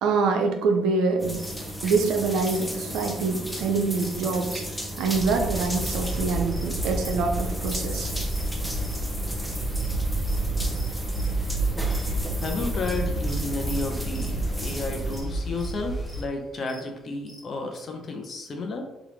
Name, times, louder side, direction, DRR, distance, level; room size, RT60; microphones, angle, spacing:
voice 1, 0.0-1.5 1.8-4.6 5.0-8.1, right 4 dB, 75° right, 4 dB, 0.4 m, -25 dB
sound 1, 1.2-15.2, equal, ahead, 0.7 m, -35 dB
sound 2, 1.4-1.5 1.9-2.1 2.4-4.2 4.5-4.6 5.0-5.3 5.5-6.2 6.5-6.7 7.0-7.8 8.3-9.0 9.4-11.5 11.7-12.1 12.3-17.8, equal, 20° right, 1.0 m, -48 dB
sound 3, 5.1-16.2, right 2 dB, 25° left, 1.1 m, -29 dB
voice 2, 12.4-18.8, left 3 dB, 50° left, 3 dB, 0.7 m, -32 dB
3.4 x 2.4 x 3.0 m, 0.91 s
hypercardioid pair, 60°, 0 cm